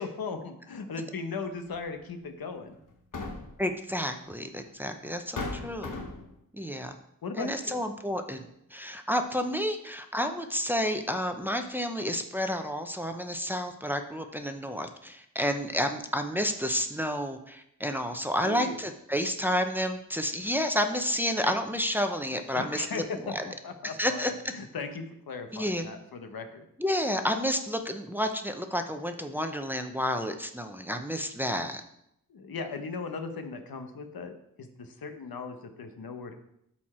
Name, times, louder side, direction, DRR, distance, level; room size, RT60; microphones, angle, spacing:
voice 1, 0.0-2.8 7.2-7.8 18.4-18.8 22.5-26.7 32.3-36.3, left 4 dB, 85° left, 6 dB, 1.0 m, -38 dB
sound 1, 1.7-1.9 2.9-3.7 4.7-4.8 5.4-6.4, left 3 dB, 60° left, 1.3 m, -36 dB
voice 2, 3.6-6.0 6.5-7.0 7.4-23.4 23.8-24.3 25.5-25.9 26.8-31.8, equal, 5° right, 5 dB, 0.7 m, -30 dB
12.0 x 4.4 x 4.4 m, 0.77 s
wide cardioid pair, 110°, 35 cm